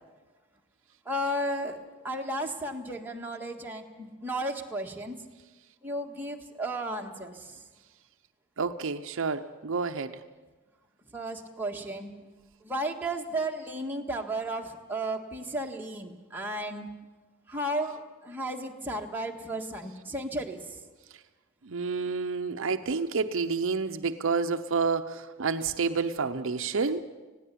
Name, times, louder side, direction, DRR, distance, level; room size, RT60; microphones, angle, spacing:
voice 1, 1.0-1.8 2.0-5.2 5.8-7.5 11.1-12.1 12.6-16.9 17.5-20.6, right 1 dB, 10° right, 0 dB, 1.6 m, -34 dB
voice 2, 8.6-10.2 21.6-27.1, right 4 dB, 65° right, 9 dB, 0.7 m, -29 dB
20.0 x 16.0 x 8.5 m, 1.2 s
head